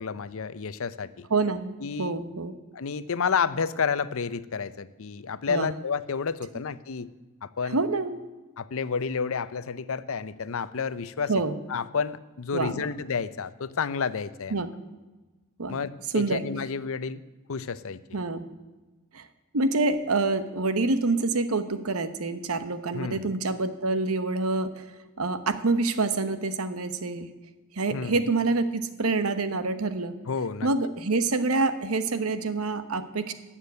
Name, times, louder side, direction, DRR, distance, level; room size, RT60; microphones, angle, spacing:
voice 1, 0.0-1.3 1.8-2.2 2.7-7.1 7.4-7.8 8.6-11.3 11.7-14.7 15.7-17.2 17.5-18.0 22.9-23.3 27.9-28.2 30.3-30.7, left 5 dB, 70° left, 16 dB, 0.6 m, -30 dB
voice 2, 1.3-2.5 5.5-5.7 7.7-8.2 11.3-11.6 12.5-12.9 14.5-14.7 15.6-15.8 16.1-16.4 18.1-18.5 19.1-19.3 19.5-24.9 25.2-27.3 27.7-30.1 30.6-33.3, right 3 dB, 80° right, 11 dB, 1.1 m, -27 dB
13.0 x 7.4 x 9.4 m, 1.2 s
head